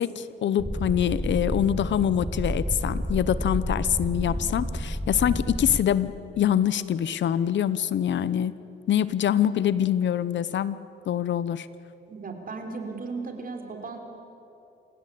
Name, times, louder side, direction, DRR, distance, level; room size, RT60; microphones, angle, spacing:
voice 1, 0.0-8.5 8.9-10.8 11.1-11.7, left 10 dB, 65° left, 16 dB, 0.8 m, -25 dB
sound 1, 0.6-5.8, equal, ahead, 1.1 m, -30 dB
voice 2, 12.1-14.0, right 4 dB, 45° right, 3 dB, 3.9 m, -36 dB
29.0 x 16.5 x 8.5 m, 2.9 s
cardioid pair, 100°, 21 cm